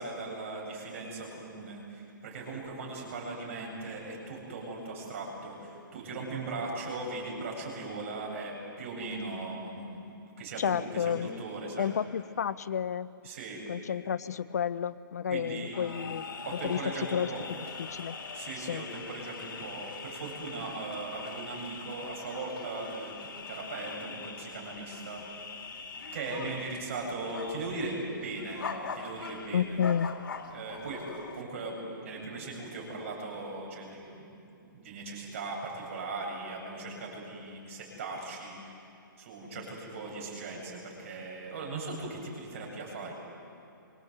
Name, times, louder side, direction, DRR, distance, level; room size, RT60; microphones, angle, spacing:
voice 1, 0.0-10.0 10.4-11.9 13.2-13.6 15.3-16.1 16.4-17.5 18.3-25.6 26.1-28.6 28.9-29.8 30.5-31.1 31.3-34.3 34.6-38.6 39.2-43.1, right 3 dB, 35° right, -1 dB, 7.9 m, -39 dB
voice 2, 10.6-11.3 11.8-13.1 13.7-16.2 16.6-16.8 17.1-17.3 17.8-18.1 18.6-18.8 29.5-30.1, left 8 dB, 50° left, 16 dB, 0.6 m, -31 dB
sound 1, 15.7-31.4, left 5 dB, 85° left, 3.4 m, -42 dB
27.0 x 25.0 x 8.2 m, 2.7 s
hypercardioid pair, 175°, 11 cm